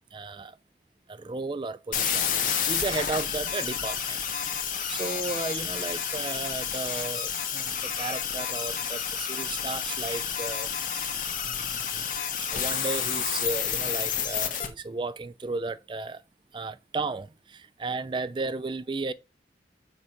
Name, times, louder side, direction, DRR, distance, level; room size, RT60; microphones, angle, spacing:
voice 1, 0.1-0.6 1.1-4.2 4.9-11.2 11.4-12.1 12.4-16.2 16.5-19.1, right 3 dB, 25° right, 0.4 m, -34 dB
sound 1, 1.9-14.7, left 8 dB, 45° left, 1.7 m, -30 dB
7.7 x 4.7 x 7.0 m
head